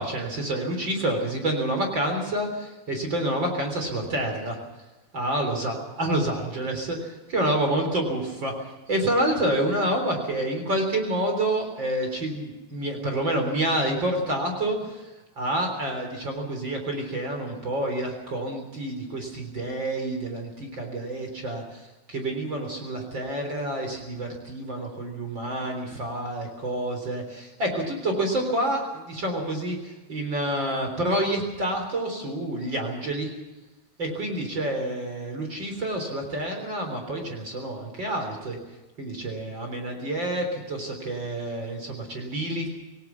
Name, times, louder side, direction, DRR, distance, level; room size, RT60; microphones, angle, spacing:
voice 1, 0.0-4.6 5.1-8.5 8.9-15.0 15.4-21.8 22.1-33.3 34.0-38.6 39.0-42.7, right 1 dB, 40° right, 3 dB, 4.3 m, -28 dB
27.0 x 18.5 x 5.9 m, 1.1 s
omnidirectional pair, 3.4 m